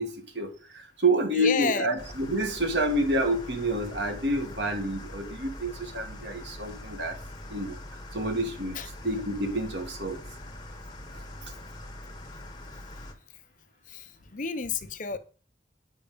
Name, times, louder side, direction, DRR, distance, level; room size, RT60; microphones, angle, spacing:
voice 1, 0.0-7.2 7.5-7.8 8.1-8.8 9.0-10.2 11.1-11.2, right 1 dB, 75° right, 1.9 m, -28 dB
voice 2, 1.4-1.9 8.7-8.9 13.9-14.0 14.3-15.2, left 5 dB, 45° left, 0.8 m, -30 dB
sound 1, 2.0-13.1, left 1 dB, 25° left, 1.3 m, -43 dB
8.6 x 5.5 x 5.1 m
head